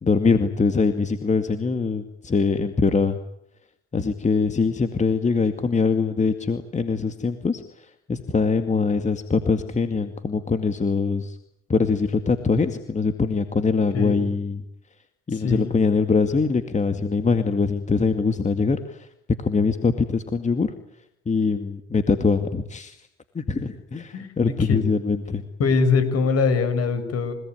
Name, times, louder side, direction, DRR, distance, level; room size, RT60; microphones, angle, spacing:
voice 1, 0.0-3.2 3.9-11.4 11.7-14.6 15.3-19.1 19.4-20.7 21.3-23.0 23.3-25.4, left 4 dB, 25° left, 8 dB, 2.2 m, -23 dB
voice 2, 15.3-15.7 24.1-24.3 24.6-24.8 25.6-27.3, left 4 dB, 50° left, 11 dB, 7.0 m, -22 dB
29.0 x 18.5 x 9.6 m, 0.75 s
supercardioid pair, 85°, 31 cm